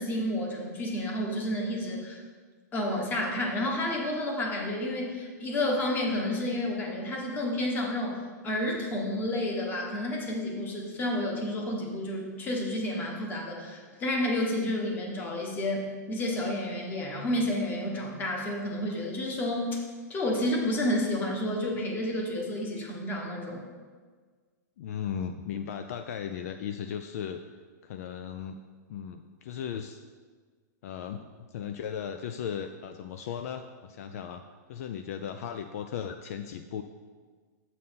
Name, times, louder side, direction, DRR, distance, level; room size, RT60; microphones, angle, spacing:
voice 1, 0.0-2.2 2.7-8.2 8.4-19.8 20.1-23.6, left 1 dB, 20° left, 0 dB, 1.2 m, -30 dB
voice 2, 24.8-27.4 27.8-28.6 28.9-30.0 30.8-34.4 34.7-36.8, left 8 dB, 55° left, 7 dB, 0.4 m, -36 dB
7.7 x 4.1 x 5.6 m, 1.5 s
supercardioid pair, 155°, 10 cm